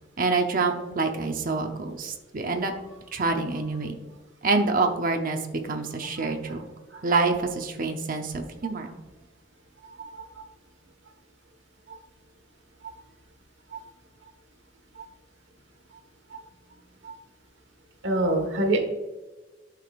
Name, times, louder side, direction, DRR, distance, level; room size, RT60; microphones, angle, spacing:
voice 1, 0.2-2.7 3.1-4.0 4.4-5.4 5.7-6.6 7.0-8.9, right 3 dB, 50° right, 4 dB, 0.8 m, -26 dB
voice 2, 18.0-18.8, right 1 dB, 70° right, 3 dB, 1.4 m, -25 dB
11.5 x 4.9 x 2.5 m, 1.2 s
head